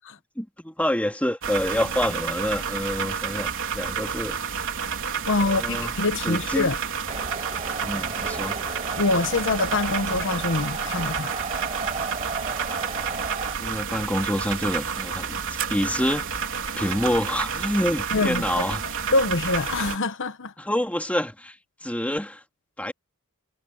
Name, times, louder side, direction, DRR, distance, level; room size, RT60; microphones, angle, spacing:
voice 1, 0.4-3.5 3.7-4.4 5.4-5.9 6.2-6.7 7.8-8.6 13.6-15.4 15.7-16.3 16.8-18.8 20.6-21.5 21.8-22.4 22.8-22.9, left 1 dB, 5° left, 2.6 m, -27 dB
sound 1, 1.4-20.0, right 6 dB, 65° right, 3.7 m, -30 dB
voice 2, 5.3-6.8 9.0-11.3 18.1-18.7 19.1-20.5, left 3 dB, 60° left, 1.0 m, -24 dB
sound 2, 7.1-13.6, right 3 dB, 30° right, 4.1 m, -34 dB
head